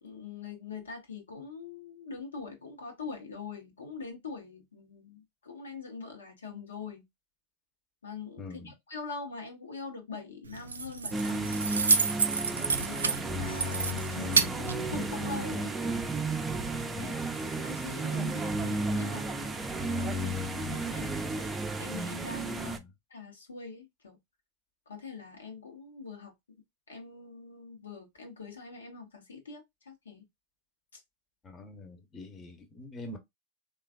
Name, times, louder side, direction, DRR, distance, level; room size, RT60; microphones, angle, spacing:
voice 1, 0.0-7.0 8.0-11.6 12.6-15.8 17.0-17.1 17.5-19.3 20.0-21.1 21.8-22.8 23.1-24.2 24.9-26.3 26.9-30.3 30.9-31.0, left 5 dB, 85° left, 0.8 m, -43 dB
voice 2, 8.4-8.7 12.7-12.8 16.9-17.2 22.6-22.9 31.4-33.2, left 2 dB, 25° left, 0.8 m, -45 dB
Keys jangling, 10.5-15.5, right 5 dB, 85° right, 0.3 m, -30 dB
sound 1, 11.1-22.8, right 2 dB, 15° right, 0.5 m, -33 dB
3.2 x 2.3 x 2.3 m
hypercardioid pair, 90°, 0 cm